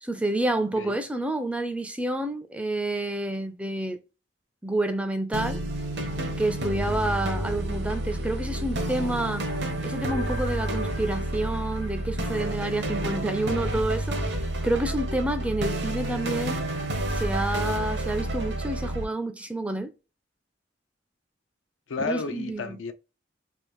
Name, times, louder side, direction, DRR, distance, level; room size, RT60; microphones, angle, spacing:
voice 1, 0.0-4.0 4.6-5.6 6.4-9.5 9.8-16.6 17.1-19.9 22.0-22.8, right 1 dB, 5° right, 0.4 m, -29 dB
sound 1, 5.3-19.0, right 1 dB, 65° right, 0.8 m, -30 dB
voice 2, 21.9-22.9, left 4 dB, 85° left, 0.5 m, -31 dB
3.5 x 2.4 x 3.0 m
head